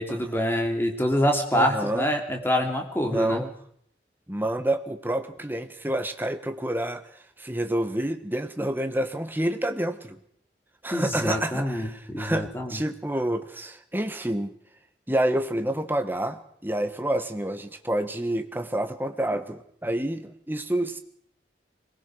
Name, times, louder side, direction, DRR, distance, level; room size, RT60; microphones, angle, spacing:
voice 1, 0.0-3.4 10.9-12.8, equal, 10° left, 3 dB, 2.8 m, -26 dB
voice 2, 1.5-2.1 3.0-3.5 4.3-10.2 10.8-14.5 15.1-21.0, right 1 dB, 10° right, 8 dB, 1.2 m, -28 dB
21.5 x 19.5 x 6.3 m, 0.68 s
head